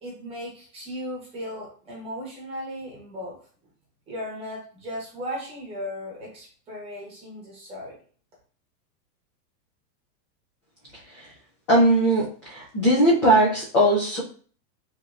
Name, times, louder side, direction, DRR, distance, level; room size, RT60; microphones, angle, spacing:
voice 1, 0.0-3.4 4.1-8.0, equal, 10° right, -4 dB, 0.9 m, -36 dB
voice 2, 11.7-14.2, right 1 dB, 20° left, -8 dB, 0.4 m, -19 dB
3.5 x 3.1 x 2.4 m, 0.43 s
supercardioid pair, 170°, 49 cm